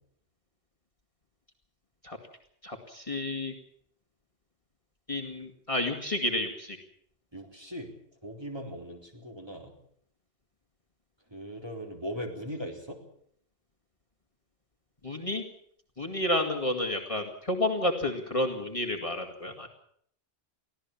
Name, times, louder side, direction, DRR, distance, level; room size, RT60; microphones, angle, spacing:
voice 1, 2.6-3.5 5.1-6.8 15.0-15.4 16.0-19.7, left 1 dB, 30° left, 1 dB, 2.3 m, -30 dB
voice 2, 7.3-7.9 8.2-9.7 11.3-13.0, equal, 25° right, 1 dB, 4.1 m, -39 dB
24.0 x 16.0 x 7.3 m, 0.64 s
omnidirectional pair, 1.1 m